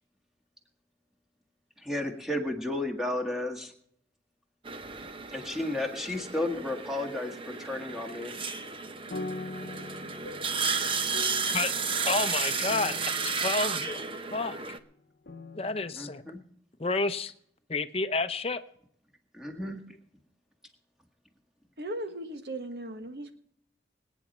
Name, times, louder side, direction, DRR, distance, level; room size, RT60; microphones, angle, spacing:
voice 1, 1.8-3.7 5.3-8.3 15.9-16.4 19.3-19.8, left 1 dB, ahead, 3 dB, 1.7 m, -33 dB
sound 1, 4.7-14.8, right 5 dB, 30° right, 0.7 m, -33 dB
sound 2, 8.6-14.6 15.3-16.4, left 2 dB, 70° left, 0.9 m, -44 dB
voice 2, 12.0-14.0 14.3-14.6 15.6-16.2 16.8-17.3 17.7-18.6, left 3 dB, 35° left, 11 dB, 0.7 m, -30 dB
voice 3, 21.8-23.3, right 1 dB, 65° right, 7 dB, 1.4 m, -37 dB
25.0 x 9.1 x 4.3 m, 0.67 s
head